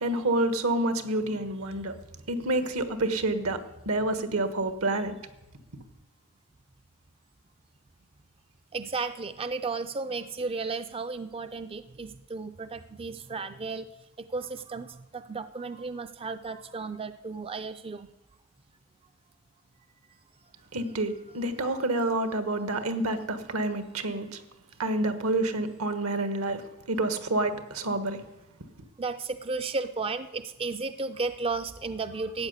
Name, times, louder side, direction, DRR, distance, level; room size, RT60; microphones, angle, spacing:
voice 1, 0.0-1.9 2.3-3.6 3.8-5.1 20.7-24.4 24.8-26.6 26.9-28.2, right 2 dB, 80° right, 10 dB, 1.4 m, -28 dB
voice 2, 8.7-13.8 14.2-14.9 15.1-18.1 29.0-32.5, right 4 dB, 25° right, 10 dB, 0.4 m, -34 dB
13.0 x 8.8 x 8.1 m, 0.99 s
head